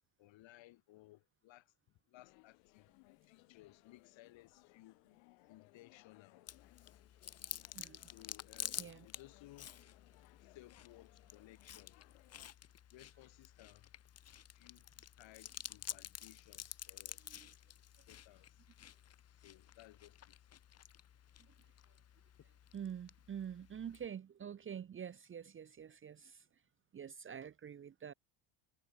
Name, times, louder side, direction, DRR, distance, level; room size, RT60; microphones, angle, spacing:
voice 1, 0.2-1.7 2.1-2.9 3.2-5.0 5.5-6.4 8.1-9.7 10.4-12.0 12.9-13.9 14.5-14.9 15.2-17.2 18.1-18.7 19.4-20.5, left 17 dB, 65° left, 6.1 m, -60 dB
sound 1, 2.2-12.5, left 40 dB or more, 90° left, 2.7 m, -66 dB
Chewing mastication, 6.5-24.1, left 10 dB, 30° left, 1.0 m, -51 dB
voice 2, 7.7-8.1 8.8-9.1 17.2-17.5 22.7-26.4 26.9-28.1, right 8 dB, 25° right, 0.8 m, -47 dB
cardioid pair, 130°, 49 cm